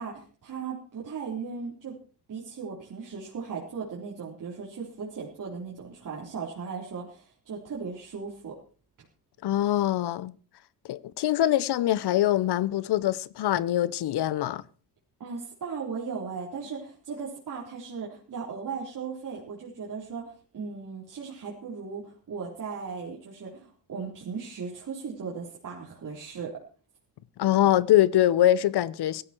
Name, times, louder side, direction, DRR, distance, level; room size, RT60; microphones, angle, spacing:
voice 1, 0.0-2.0 2.3-8.5 15.2-26.5, right 5 dB, 50° right, 3.9 m, -37 dB
voice 2, 9.4-10.3 10.9-14.6 27.4-29.2, left 13 dB, 75° left, 0.8 m, -23 dB
17.0 x 14.0 x 4.5 m
cardioid pair, 130°, 40 cm